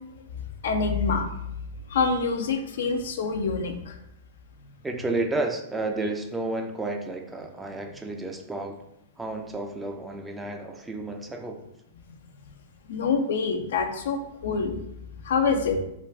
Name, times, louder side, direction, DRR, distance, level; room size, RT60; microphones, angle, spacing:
voice 1, 0.6-1.3 1.9-4.0 12.9-14.8 15.2-15.8, left 4 dB, 65° left, 5 dB, 0.4 m, -26 dB
voice 2, 4.8-8.8 9.2-11.6, right 2 dB, 10° right, 3 dB, 0.3 m, -31 dB
2.4 x 2.2 x 3.3 m, 0.81 s
hypercardioid pair, 110°, 0 cm